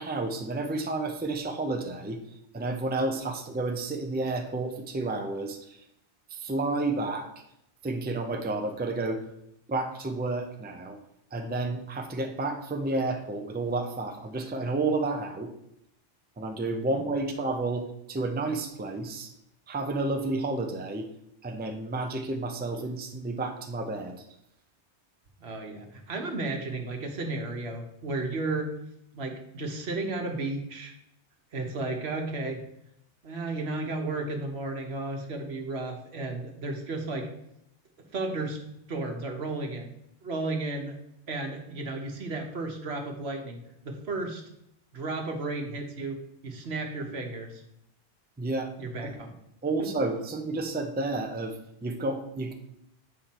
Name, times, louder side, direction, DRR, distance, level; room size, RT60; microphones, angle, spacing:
voice 1, 0.0-2.2 2.5-5.8 6.3-7.3 7.8-9.2 9.7-11.0 11.3-15.5 16.4-19.3 19.7-21.1 21.4-24.2 48.4-48.7 49.0-49.2 49.6-52.5, right 2 dB, 10° right, 5 dB, 0.5 m, -31 dB
voice 2, 25.4-28.7 29.1-30.9 31.5-32.6 33.2-37.3 38.1-38.6 38.9-39.9 40.2-41.0 41.3-43.6 43.8-44.4 44.9-47.6 48.8-49.4 49.8-49.9, right 2 dB, 70° right, 3 dB, 1.4 m, -33 dB
7.8 x 5.0 x 4.2 m, 0.79 s
omnidirectional pair, 1.1 m